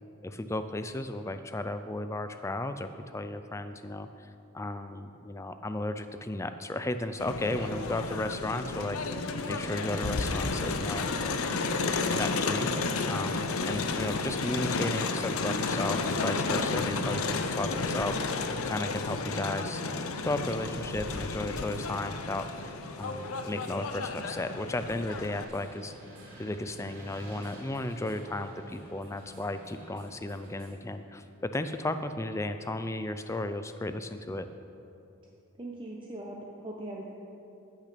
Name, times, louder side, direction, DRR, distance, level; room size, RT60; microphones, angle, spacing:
voice 1, 0.2-4.1 4.5-11.4 11.7-18.4 18.6-22.7 23.0-25.9 26.4-34.5, left 2 dB, 15° left, 9 dB, 0.3 m, -34 dB
Crowd, 7.2-25.4, left 3 dB, 75° left, 0.7 m, -32 dB
sound 1, 20.4-30.7, right 1 dB, 75° right, 3.0 m, -52 dB
voice 2, 35.6-37.1, right 1 dB, 20° right, -2 dB, 0.7 m, -40 dB
15.0 x 6.0 x 5.9 m, 2.8 s
head